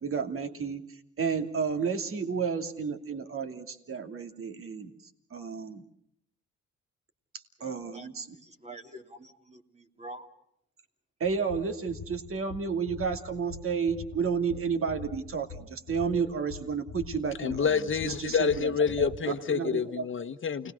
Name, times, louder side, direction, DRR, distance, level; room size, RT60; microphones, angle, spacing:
voice 1, 0.0-4.9 5.3-5.8 7.6-8.3 11.2-17.7 18.0-18.7 19.5-20.1, right 6 dB, 45° right, 2.6 m, -31 dB
voice 2, 7.6-8.1 8.3-10.3 19.0-19.3 19.6-20.0, right 4 dB, 20° right, 2.8 m, -41 dB
sound 1, 11.3-19.2, left 6 dB, 75° left, 1.4 m, -44 dB
voice 3, 17.4-20.7, left 6 dB, 40° left, 1.3 m, -28 dB
29.0 x 19.5 x 6.5 m
cardioid pair, 90°, 30 cm